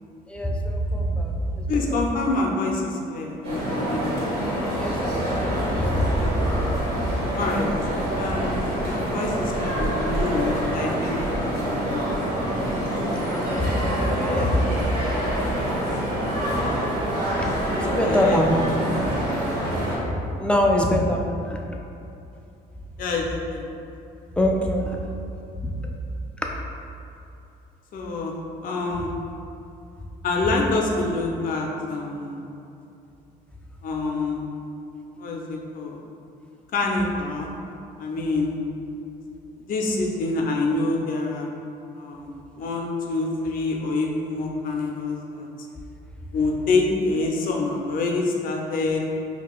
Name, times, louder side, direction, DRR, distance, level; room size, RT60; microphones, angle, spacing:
voice 1, 0.3-2.0 4.8-6.6 6.9-7.3 13.3-14.8 17.4-18.5 20.1-21.6 24.4-25.1 25.6-25.8 26.4-26.5, left 1 dB, 5° left, 0 dB, 0.4 m, -25 dB
voice 2, 1.7-4.2 7.3-7.7 8.2-12.1 17.8-18.4 23.0-23.7 27.9-28.3 28.6-29.1 30.2-32.4 33.8-34.4 35.2-36.0 36.7-37.6 38.0-38.6 39.7-41.5 41.9-45.5 46.3-49.0, left 3 dB, 55° left, 0 dB, 0.6 m, -26 dB
sound 1, 3.4-20.0, equal, 70° right, 1.5 m, -26 dB
5.5 x 2.3 x 2.4 m, 2.7 s
cardioid pair, 110°, 17 cm